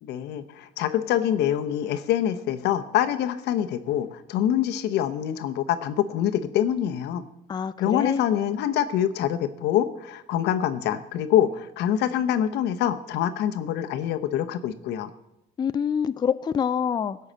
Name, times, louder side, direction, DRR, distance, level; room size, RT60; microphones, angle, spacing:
voice 1, 0.0-7.2 7.8-15.1, left 10 dB, 80° left, 10 dB, 0.9 m, -25 dB
voice 2, 7.5-8.2 15.6-17.2, left 7 dB, 25° left, 13 dB, 0.4 m, -26 dB
16.5 x 5.7 x 7.5 m, 0.87 s
cardioid pair, 110°, 17 cm